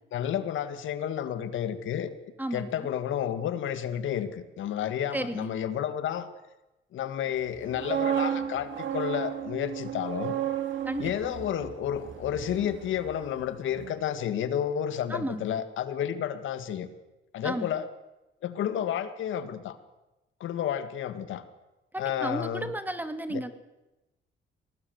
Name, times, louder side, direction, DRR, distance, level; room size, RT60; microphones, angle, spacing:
voice 1, 0.1-2.1 2.5-6.3 6.9-10.4 11.0-16.9 17.3-17.9 18.4-19.8 20.4-21.4 22.0-22.7 23.3-23.4, left 9 dB, 80° left, 11 dB, 2.0 m, -31 dB
voice 2, 2.4-2.9 5.1-5.5 10.8-11.3 15.1-15.5 17.4-17.8 21.9-23.6, right 1 dB, 10° right, 9 dB, 2.3 m, -33 dB
sound 1, 7.5-13.5 13.7-14.0, right 9 dB, 70° right, 2.9 m, -33 dB
22.0 x 18.5 x 8.1 m, 1.0 s
cardioid pair, 90°, 20 cm